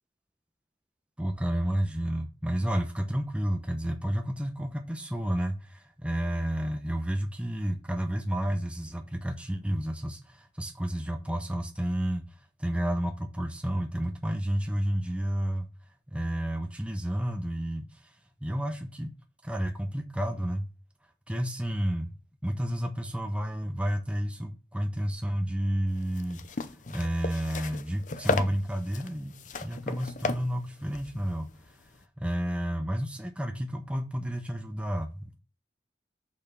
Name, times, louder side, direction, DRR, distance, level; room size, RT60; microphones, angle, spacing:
voice 1, 1.2-15.7 16.1-19.1 19.4-20.7 21.3-22.2 22.4-31.9 32.2-35.4, equal, 5° right, 0.9 m, -31 dB
sound 1, 26.0-32.0, left 3 dB, 45° left, 0.6 m, -35 dB
6.5 x 5.5 x 6.2 m
head